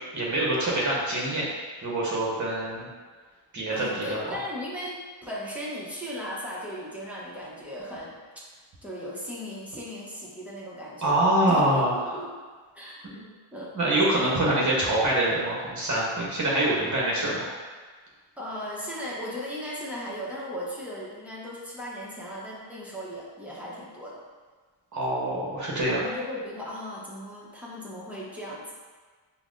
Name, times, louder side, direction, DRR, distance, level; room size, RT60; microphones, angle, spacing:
voice 1, 0.1-1.5 1.8-2.9 3.5-4.2 11.0-12.2 13.0-13.2 13.7-17.5 24.9-26.0, right 1 dB, 35° right, -5 dB, 1.0 m, -25 dB
voice 2, 3.7-5.0 5.2-8.1 8.8-11.8 12.1-12.3 12.7-13.1 13.5-13.8 14.2-14.6 18.4-24.2 25.9-28.7, equal, 5° right, -7 dB, 0.8 m, -37 dB
5.5 x 2.2 x 2.5 m, 1.4 s
wide cardioid pair, 105°, 50 cm